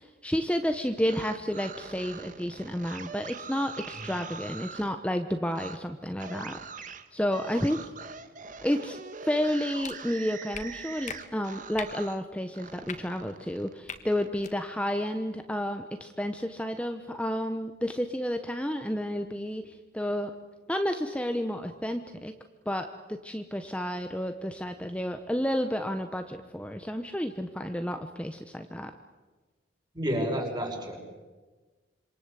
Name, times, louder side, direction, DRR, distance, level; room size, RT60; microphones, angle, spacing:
voice 1, 0.0-7.9 8.6-20.3 20.7-22.3 22.7-28.9, equal, 5° left, 6 dB, 1.1 m, -31 dB
sound 1, 0.9-4.9 5.5-5.8 6.2-12.2 12.5-14.3, right 5 dB, 40° right, 1.6 m, -43 dB
sound 2, 9.8-9.9 10.5-10.6 11.1-11.2 11.7-11.9 12.8-13.0 13.8-14.0 14.4-14.5, left 6 dB, 40° left, 2.1 m, -39 dB
voice 2, 29.9-31.0, equal, 20° right, 2 dB, 5.8 m, -30 dB
27.0 x 26.0 x 8.3 m, 1.3 s
head